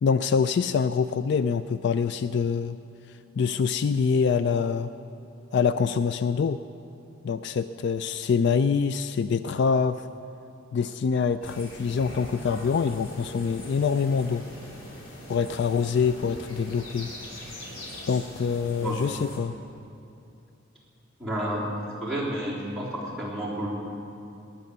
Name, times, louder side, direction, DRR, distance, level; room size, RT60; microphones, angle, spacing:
voice 1, 0.0-2.8 3.4-4.9 5.5-6.6 7.2-10.1 10.7-14.4 15.3-17.1 18.1-19.5, left 6 dB, 55° left, 12 dB, 0.3 m, -25 dB
sound 1, 11.4-19.4, left 1 dB, 85° left, 2.9 m, -42 dB
voice 2, 21.2-21.7 22.0-23.7, right 1 dB, ahead, -6 dB, 3.4 m, -30 dB
18.0 x 10.5 x 6.7 m, 2.6 s
head